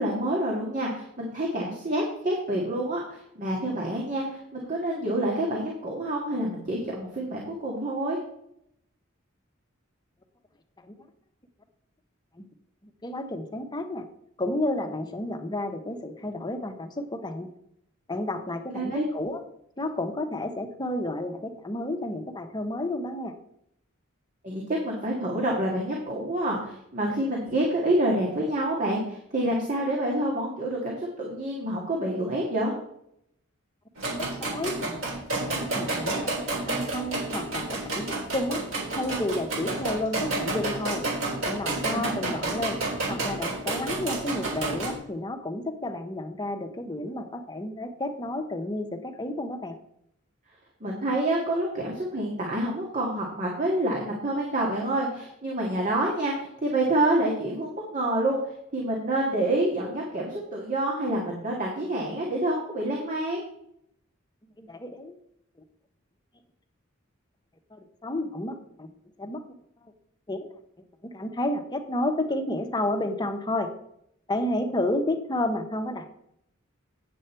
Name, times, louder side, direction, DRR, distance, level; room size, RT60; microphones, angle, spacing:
voice 1, 0.0-8.2 18.7-19.1 24.4-32.7 41.9-42.3 50.8-58.4 58.7-63.4, right 1 dB, 40° right, -2 dB, 1.8 m, -27 dB
voice 2, 12.8-14.0 14.4-17.5 18.1-19.4 19.8-23.3 34.2-35.0 35.4-36.3 36.6-38.6 38.9-41.0 41.4-42.8 43.1-49.8 64.6-65.1 67.7-68.9 69.2-69.4 70.3-70.5 70.8-73.7 74.3-76.1, left 1 dB, 20° left, 5 dB, 0.9 m, -31 dB
sound 1, 33.9-44.9, right 2 dB, 70° right, 4.1 m, -30 dB
9.0 x 7.7 x 4.4 m, 0.74 s
head